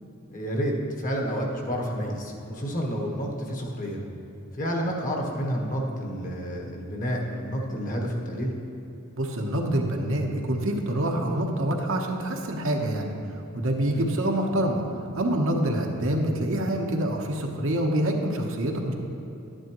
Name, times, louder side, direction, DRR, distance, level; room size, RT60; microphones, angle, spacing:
voice 1, 0.3-4.0 4.6-8.5 13.9-14.1, equal, 40° left, 0 dB, 1.2 m, -30 dB
voice 2, 9.2-13.1 13.5-14.8 15.2-18.9, right 1 dB, 65° right, 1 dB, 1.0 m, -26 dB
11.5 x 10.0 x 3.0 m, 3.0 s
head